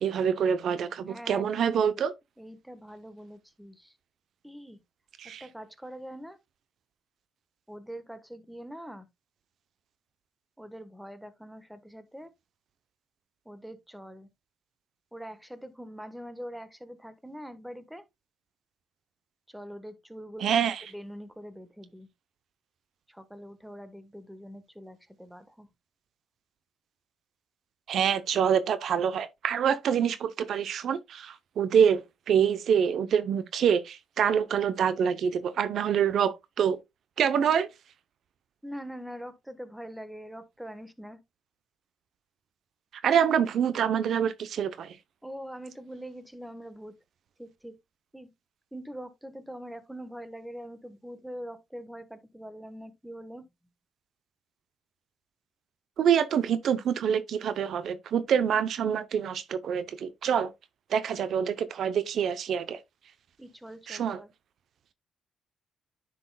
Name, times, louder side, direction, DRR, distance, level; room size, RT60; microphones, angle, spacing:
voice 1, 0.0-2.1 5.2-5.4 20.4-20.8 27.9-36.8 37.2-37.7 42.9-45.0 56.0-60.5 60.9-62.8 63.9-64.2, right 8 dB, 65° right, 0.7 m, -26 dB
voice 2, 1.1-1.8 2.4-4.0 4.4-4.8 5.2-6.4 7.7-9.1 10.6-12.3 13.4-14.3 15.1-18.0 19.5-20.6 20.9-22.1 23.1-25.7 38.6-41.2 45.2-46.9 47.4-47.8 48.1-48.3 48.7-53.5 63.4-64.3, equal, 5° right, 1.2 m, -43 dB
10.0 x 6.1 x 2.3 m
cardioid pair, 90°, 0 cm